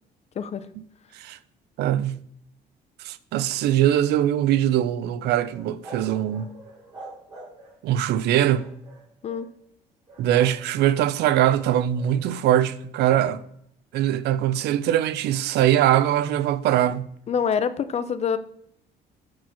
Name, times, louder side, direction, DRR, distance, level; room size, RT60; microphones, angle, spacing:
voice 1, 0.4-0.7 9.2-9.5 17.3-18.4, left 7 dB, 40° left, 0.5 m, -25 dB
voice 2, 1.8-2.2 3.0-6.6 7.8-8.7 10.2-13.4 13.9-17.1, right 11 dB, 75° right, 0.5 m, -22 dB
sound 1, 5.5-7.9 8.5-9.5 10.1-10.6 10.9-12.4 13.1-13.4, right 2 dB, 25° right, 3.5 m, -45 dB
5.8 x 4.6 x 6.1 m
cardioid pair, 110°, 17 cm